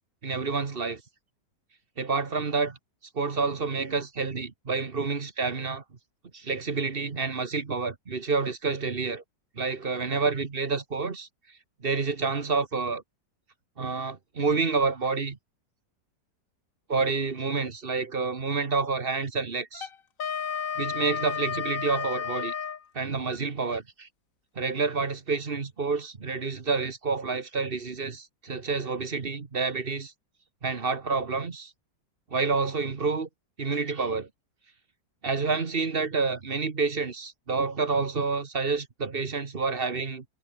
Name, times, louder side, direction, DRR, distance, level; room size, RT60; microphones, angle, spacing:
voice 1, 0.2-1.0 2.0-2.8 3.1-5.8 6.3-9.2 9.6-11.3 11.8-13.0 13.8-15.4 16.9-19.9 20.8-22.5 22.9-24.1 24.6-30.1 30.6-31.7 32.3-33.3 33.6-34.3 35.2-40.2, right 4 dB, 35° right, 1.5 m, -28 dB
Wind instrument woodwind instrument, 19.7-22.8, left 7 dB, 50° left, 1.7 m, -32 dB
omnidirectional pair, 2.0 m